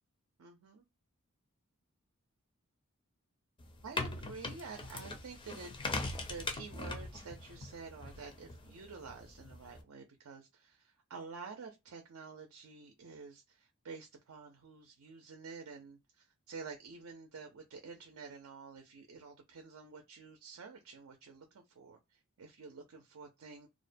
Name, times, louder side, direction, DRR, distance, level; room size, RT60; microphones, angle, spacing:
voice 1, 0.4-0.8 3.8-5.8 6.3-23.7, right 4 dB, 70° right, 0.5 m, -49 dB
sound 1, 3.6-9.8, left 3 dB, 20° left, 0.4 m, -41 dB
2.4 x 2.1 x 2.5 m
head